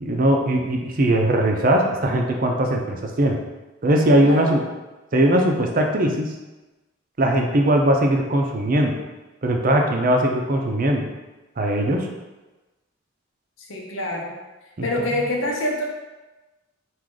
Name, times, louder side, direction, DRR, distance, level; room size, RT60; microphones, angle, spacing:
voice 1, 0.0-3.4 3.8-4.6 5.1-6.3 7.2-9.0 9.4-11.1 11.6-12.1 14.8-14.9, right 1 dB, 45° right, 2 dB, 0.5 m, -20 dB
voice 2, 4.2-4.5 13.7-14.3 14.8-15.8, left 1 dB, 80° left, -1 dB, 0.9 m, -25 dB
4.7 x 2.5 x 3.8 m, 1.1 s
head